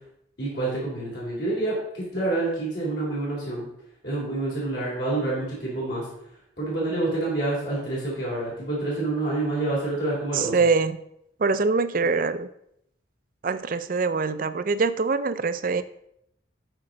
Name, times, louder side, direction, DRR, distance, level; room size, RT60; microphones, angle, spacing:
voice 1, 0.4-3.7 4.0-6.1 6.6-10.6, right 2 dB, 65° left, -7 dB, 3.6 m, -27 dB
voice 2, 10.3-11.0 11.4-12.5 13.4-15.8, right 4 dB, 45° right, 13 dB, 0.4 m, -24 dB
12.5 x 4.4 x 3.9 m, 0.75 s
head